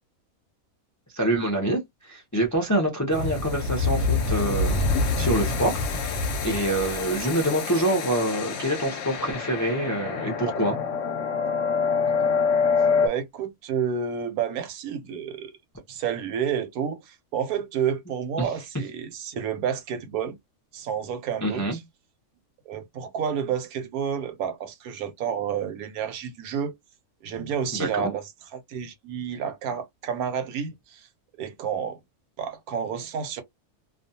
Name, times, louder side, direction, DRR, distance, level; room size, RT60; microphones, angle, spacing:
voice 1, 1.1-4.8 5.2-10.8 18.4-18.5 21.4-21.8 27.7-28.1, right 1 dB, 25° left, 0.4 m, -26 dB
sound 1, 3.1-13.1, left 4 dB, 60° left, 0.8 m, -26 dB
voice 2, 13.0-15.5 15.9-20.4 20.7-21.8 22.7-26.7 27.2-28.2 28.5-31.1 31.4-32.0 32.4-33.4, right 8 dB, 80° right, 1.1 m, -30 dB
2.5 x 2.2 x 2.7 m
omnidirectional pair, 1.5 m